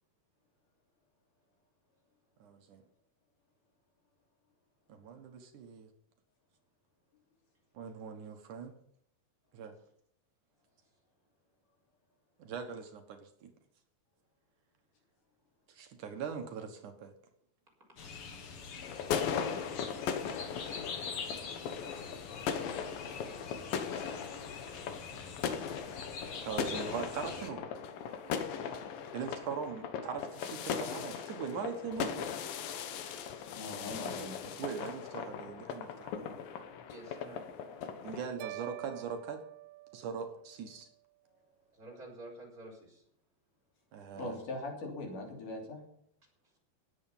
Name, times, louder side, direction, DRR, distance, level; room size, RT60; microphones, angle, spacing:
voice 1, 2.4-2.8 4.9-5.9 7.7-8.7 9.5-9.7 12.4-13.5 15.7-17.1 26.4-27.7 29.1-32.3 34.6-36.4 38.0-39.4 39.9-40.9 43.9-44.4, right 6 dB, 70° right, 5 dB, 2.8 m, -41 dB
sound 1, 18.0-27.5, left 5 dB, 50° left, 1.9 m, -45 dB
sound 2, 18.8-38.3, left 7 dB, 90° left, 2.9 m, -38 dB
voice 2, 23.8-24.7 25.2-25.4 25.8-25.9 28.2-28.5 33.0-33.3 36.9-37.5 41.7-43.0, right 1 dB, 25° right, -1 dB, 4.9 m, -51 dB
voice 3, 33.5-34.6 44.1-45.8, left 2 dB, 70° left, 1 dB, 4.6 m, -41 dB
sound 3, 38.4-40.7, right 19 dB, 85° right, 2.4 m, -47 dB
18.5 x 8.0 x 5.6 m, 0.70 s
omnidirectional pair, 3.9 m